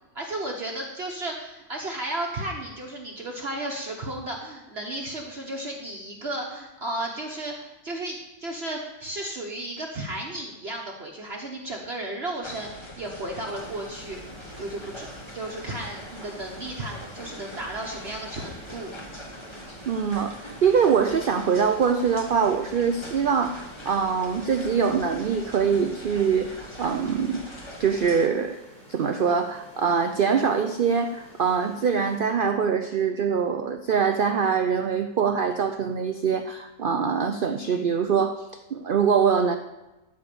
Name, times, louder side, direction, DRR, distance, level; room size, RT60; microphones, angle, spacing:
voice 1, 0.1-14.2 14.6-18.9, right 1 dB, 45° right, 0 dB, 1.3 m, -34 dB
sound 1, 12.4-28.3, equal, 20° left, 1.4 m, -42 dB
sound 2, 13.5-32.2, equal, 35° left, 3.7 m, -51 dB
voice 2, 19.6-27.4 27.8-28.6 28.9-39.6, right 6 dB, 65° right, 7 dB, 0.5 m, -24 dB
13.5 x 4.5 x 6.8 m, 1.0 s
omnidirectional pair, 1.6 m